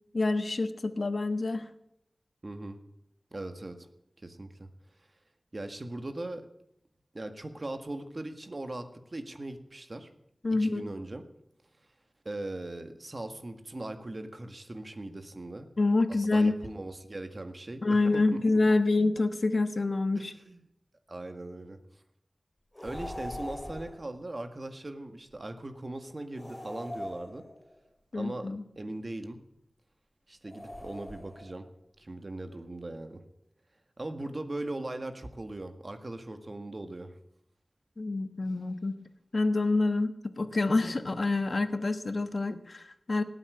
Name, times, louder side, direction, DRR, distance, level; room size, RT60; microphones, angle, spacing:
voice 1, 0.1-1.7 10.4-10.9 15.8-16.6 17.8-20.3 28.1-28.6 38.0-39.0 39.3-43.2, left 3 dB, 60° left, 10 dB, 1.2 m, -27 dB
voice 2, 2.4-2.8 3.3-3.9 4.2-4.7 5.5-6.5 7.1-10.1 10.5-11.2 12.2-15.7 16.1-18.4 20.1-20.6 21.1-21.8 22.8-27.4 28.1-29.4 30.3-31.7 32.0-33.2 34.0-37.1, right 2 dB, 45° right, 7 dB, 1.7 m, -39 dB
sound 1, 22.8-24.1 26.4-27.8 30.5-31.6, left 1 dB, 25° left, 2.3 m, -41 dB
18.0 x 8.2 x 9.4 m, 0.78 s
wide cardioid pair, 70°, 0 cm